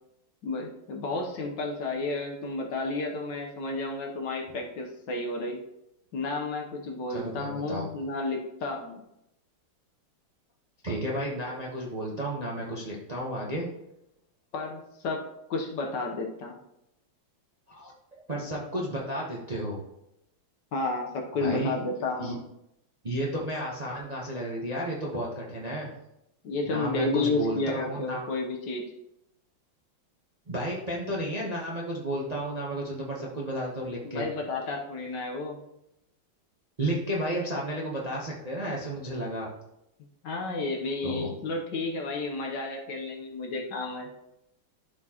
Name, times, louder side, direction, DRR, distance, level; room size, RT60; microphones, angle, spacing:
voice 1, 0.4-5.6 6.1-9.0 14.5-15.2 15.5-16.6 20.7-22.4 26.4-28.9 34.0-35.6 40.2-44.1, left 3 dB, 65° left, 1 dB, 1.5 m, -31 dB
voice 2, 7.1-7.8 10.8-13.7 17.7-17.9 18.3-19.8 21.3-21.8 22.2-22.4 23.0-25.9 26.7-28.3 30.5-34.3 36.8-39.5 41.0-41.4, right 1 dB, 30° right, -4 dB, 0.7 m, -32 dB
12.0 x 4.4 x 2.9 m, 0.84 s
omnidirectional pair, 2.2 m